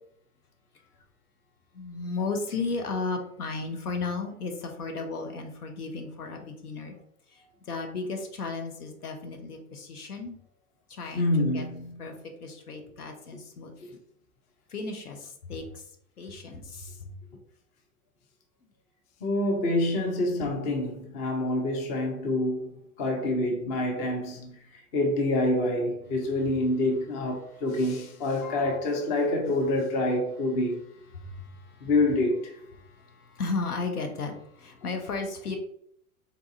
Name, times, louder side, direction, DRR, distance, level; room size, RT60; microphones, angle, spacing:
voice 1, 1.7-6.9 7.3-10.4 10.9-11.7 12.0-12.1 12.4-13.7 14.7-15.9 16.2-17.1 27.4-27.7 31.1-31.9 32.7-35.6, left 3 dB, 85° left, 0.7 m, -35 dB
voice 2, 11.1-11.9 19.2-22.7 23.0-24.6 24.9-30.8 31.8-32.5, left 1 dB, 20° left, 0.3 m, -26 dB
3.9 x 2.3 x 2.6 m
figure-of-eight pair, 95°, 44 cm